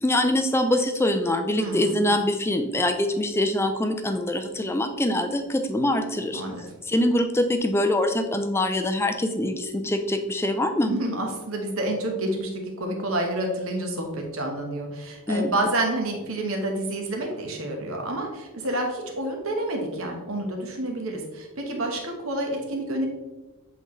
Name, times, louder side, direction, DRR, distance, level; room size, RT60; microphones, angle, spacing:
voice 1, 0.0-6.4 6.9-10.9 15.3-15.5, left 1 dB, 10° left, 7 dB, 0.4 m, -24 dB
voice 2, 1.6-2.1 6.3-6.6 10.9-23.1, right 1 dB, 65° right, 2 dB, 1.2 m, -29 dB
7.7 x 3.9 x 3.2 m, 1.2 s
head